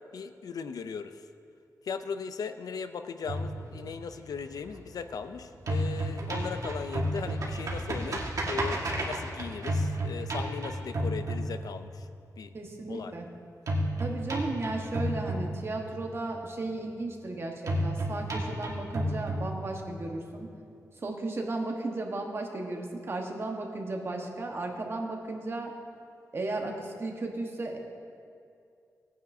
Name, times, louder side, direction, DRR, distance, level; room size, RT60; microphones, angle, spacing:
voice 1, 0.1-1.2 1.8-12.0 12.4-12.5 12.9-13.1, left 6 dB, 80° left, 10 dB, 0.5 m, -38 dB
sound 1, 3.2-5.3 5.5-12.0 13.7-16.0 17.7-20.0, right 1 dB, 65° right, 1.7 m, -31 dB
voice 2, 12.5-13.3 14.0-20.5 21.0-25.7 26.3-27.8, right 2 dB, 40° right, 1 dB, 1.2 m, -35 dB
17.5 x 9.2 x 2.7 m, 2.4 s
wide cardioid pair, 135°, 6 cm